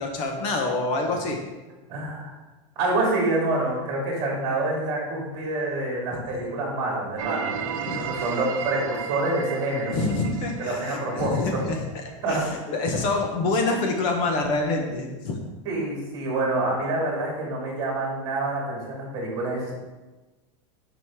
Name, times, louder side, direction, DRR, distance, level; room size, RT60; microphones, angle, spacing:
voice 1, 0.0-1.4 6.1-6.4 7.5-8.4 9.9-15.4, left 3 dB, 30° left, 2 dB, 1.1 m, -27 dB
voice 2, 1.9-2.3 2.8-10.0 10.6-11.6 12.2-12.4 15.6-19.7, right 2 dB, 25° right, -2 dB, 2.4 m, -27 dB
sound 1, 7.2-12.0, right 8 dB, 90° right, 0.7 m, -34 dB
9.3 x 5.2 x 3.6 m, 1.2 s
supercardioid pair, 180°, 17 cm